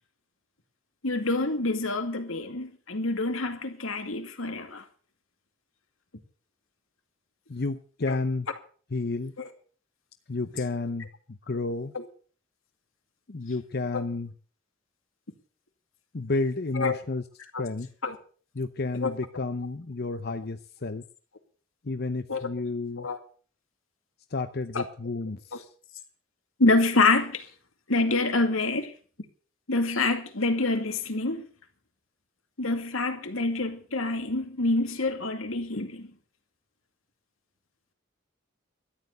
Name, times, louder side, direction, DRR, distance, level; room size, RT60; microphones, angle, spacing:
voice 1, 1.0-4.8 8.1-8.2 9.4-9.5 16.8-16.9 17.5-17.6 18.0-18.2 19.0-19.1 22.3-22.5 23.0-23.2 24.7-24.8 25.5-25.6 26.6-27.5 27.9-28.9 29.7-31.5 32.6-36.1, left 2 dB, 85° left, 2.3 m, -26 dB
voice 2, 7.5-8.5 8.9-9.3 10.3-11.9 13.3-14.3 16.1-17.2 17.6-17.9 18.5-21.0 21.8-23.1 24.3-25.7, left 3 dB, 50° left, 0.7 m, -31 dB
13.5 x 11.0 x 6.7 m
head